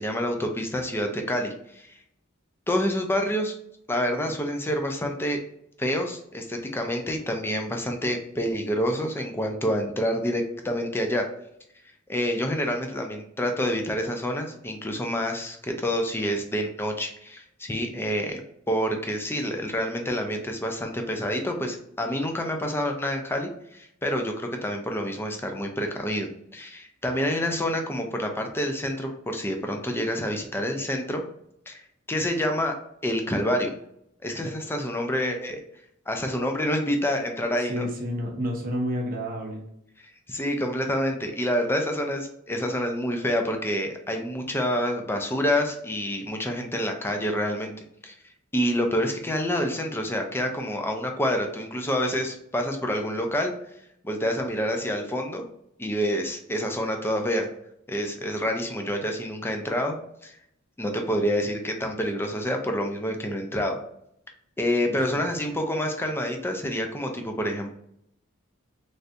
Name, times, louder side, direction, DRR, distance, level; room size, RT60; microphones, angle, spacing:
voice 1, 0.0-1.9 2.7-3.5 3.9-5.4 5.8-11.3 12.1-18.4 18.7-31.2 31.7-31.8 32.1-32.7 33.0-33.7 34.2-35.6 36.1-37.9 40.0-47.7 48.0-48.1 48.5-53.5 54.0-55.4 55.8-57.5 57.9-59.9 60.2-60.3 60.8-63.8 64.6-67.7, equal, 10° left, 3 dB, 0.4 m, -27 dB
voice 2, 37.7-39.6 64.8-65.0, equal, 45° right, -1 dB, 0.7 m, -30 dB
3.3 x 2.6 x 2.6 m, 0.75 s
head